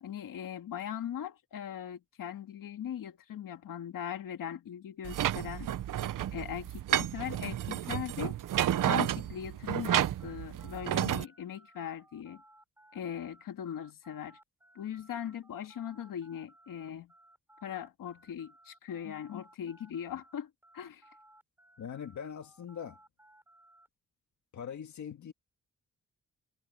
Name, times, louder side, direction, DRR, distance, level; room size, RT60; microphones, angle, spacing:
voice 1, 0.0-5.7 6.3-8.4 8.9-12.4 12.9-14.4 14.8-17.1 17.6-21.0, left 9 dB, 90° left, 2.2 m, -40 dB
sound 1, 5.0-11.2, right 11 dB, 80° right, 0.8 m, -31 dB
sound 2, 10.2-20.3 20.6-23.9, right 1 dB, 5° right, 4.1 m, -61 dB
voice 2, 21.8-23.0 24.5-25.3, left 8 dB, 60° left, 1.8 m, -41 dB
wide cardioid pair, 155°, 32 cm